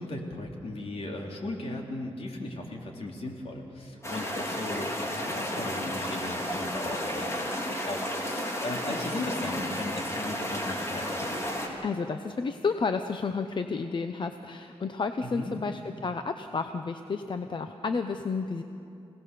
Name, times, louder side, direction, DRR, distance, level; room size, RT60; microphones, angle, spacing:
voice 1, 0.0-11.5 15.2-15.5, left 2 dB, 75° left, 0 dB, 3.4 m, -37 dB
sound 1, 4.0-11.7, equal, 25° left, 3.6 m, -32 dB
voice 2, 11.8-18.6, left 4 dB, 50° left, 7 dB, 0.9 m, -31 dB
27.0 x 18.0 x 6.9 m, 2.6 s
wide cardioid pair, 95°, 10 cm